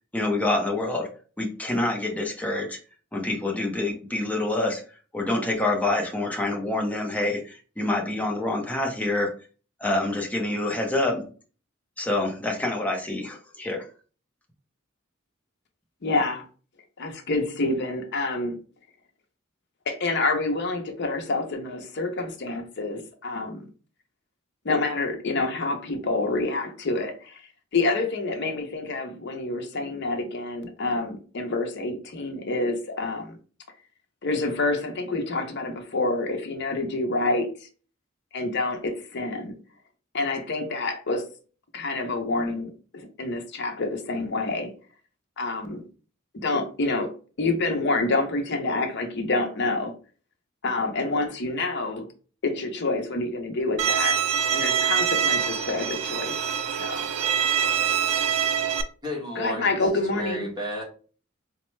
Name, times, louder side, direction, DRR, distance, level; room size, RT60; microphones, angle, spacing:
voice 1, 0.1-1.1 1.4-2.8 3.1-4.8 5.1-9.3 9.8-11.3 12.0-13.9, left 2 dB, 5° left, 0.6 m, -26 dB
voice 2, 16.0-16.5 17.0-18.6 19.9-23.7 24.6-33.4 34.2-37.7 38.3-39.5 40.1-41.3 41.7-44.7 45.4-45.9 46.3-47.1 47.4-49.9 50.6-52.0 52.4-54.2 54.5-56.3 56.8-57.1 59.4-60.5, left 2 dB, 55° left, 0.7 m, -27 dB
Bowed string instrument, 53.8-58.8, right 8 dB, 90° right, 0.4 m, -24 dB
voice 3, 59.0-59.8 60.1-60.8, left 1 dB, 20° right, 1.1 m, -32 dB
4.2 x 2.2 x 3.1 m
head